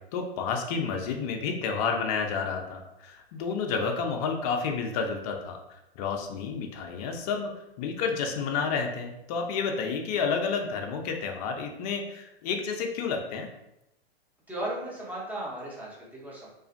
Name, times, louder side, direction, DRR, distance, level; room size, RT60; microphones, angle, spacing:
voice 1, 0.1-5.6 6.0-7.5 7.8-13.5, left 5 dB, 40° left, 3 dB, 0.4 m, -30 dB
voice 2, 14.5-16.5, right 1 dB, 5° right, -6 dB, 0.6 m, -36 dB
2.5 x 2.4 x 2.4 m, 0.88 s
hypercardioid pair, 115°, 31 cm